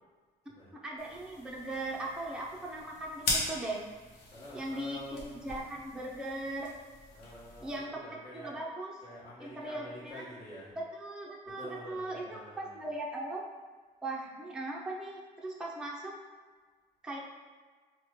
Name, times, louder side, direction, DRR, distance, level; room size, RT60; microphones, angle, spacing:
voice 1, 0.8-3.8 4.5-6.7 7.6-7.9 8.3-8.9 9.4-10.2 11.0-13.4 14.0-16.1 17.0-17.2, right 1 dB, 5° right, -3 dB, 0.4 m, -39 dB
sound 1, 1.0-7.8, left 2 dB, 80° left, 0.9 m, -40 dB
voice 2, 4.3-5.5 7.1-8.6 9.0-10.8 11.4-12.8, left 1 dB, 35° left, -14 dB, 1.3 m, -48 dB
3.0 x 2.1 x 3.6 m, 1.5 s
cardioid pair, 110°, 17 cm